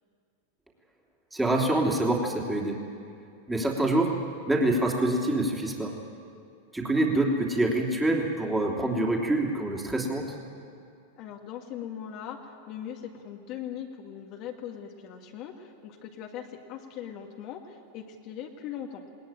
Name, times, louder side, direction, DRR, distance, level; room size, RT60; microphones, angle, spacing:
voice 1, 1.3-2.8 3.5-4.2 4.5-5.9 6.7-10.3, right 1 dB, 10° right, 0 dB, 3.2 m, -26 dB
voice 2, 11.2-19.0, left 9 dB, 50° left, 1 dB, 2.0 m, -40 dB
20.0 x 19.0 x 9.1 m, 2.4 s
hypercardioid pair, 105°, 0 cm